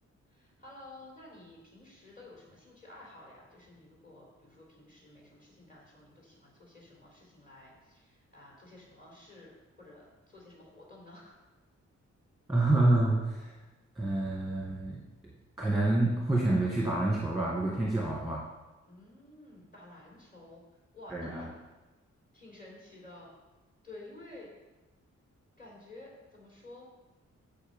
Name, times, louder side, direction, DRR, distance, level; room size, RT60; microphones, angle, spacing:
voice 1, 0.3-11.3 18.9-20.6 20.9-21.5 22.3-23.3 23.8-24.5 25.6-26.9, left 2 dB, 30° left, -4 dB, 4.1 m, -52 dB
voice 2, 12.5-13.5 14.0-15.0 15.6-18.4 21.1-21.5, right 2 dB, ahead, -5 dB, 1.7 m, -27 dB
15.0 x 5.3 x 5.3 m, 1.1 s
wide cardioid pair, 155°, 29 cm